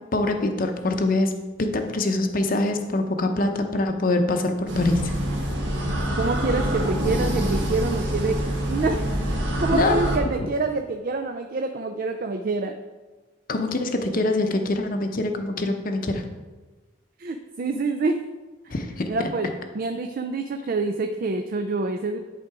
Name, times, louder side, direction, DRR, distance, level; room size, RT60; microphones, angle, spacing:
voice 1, 0.1-1.3 1.6-5.1 9.7-10.0 13.5-16.2 18.7-19.3, left 2 dB, 45° left, 6 dB, 0.7 m, -24 dB
sound 1, 4.7-10.2, equal, 65° right, 1.5 m, -25 dB
voice 2, 6.1-8.4 8.7-9.0 9.6-12.7 17.2-18.2 18.6-18.7 19.1-19.5 19.7-22.2, right 3 dB, 45° right, 6 dB, 0.4 m, -26 dB
11.0 x 3.8 x 4.7 m, 1.3 s
head